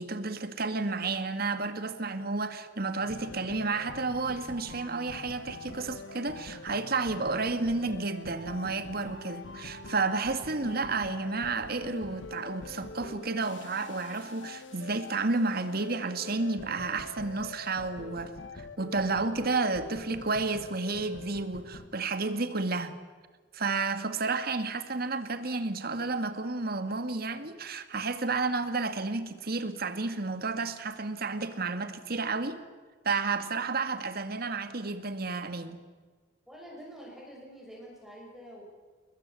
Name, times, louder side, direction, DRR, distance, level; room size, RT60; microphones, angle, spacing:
voice 1, 0.0-23.0 23.5-32.6 33.0-35.8, right 3 dB, 55° right, 9 dB, 2.1 m, -31 dB
sound 1, 3.0-21.9, left 2 dB, 75° left, 1.6 m, -44 dB
voice 2, 36.5-38.6, equal, ahead, -3 dB, 6.5 m, -47 dB
29.0 x 21.5 x 8.5 m, 1.5 s
head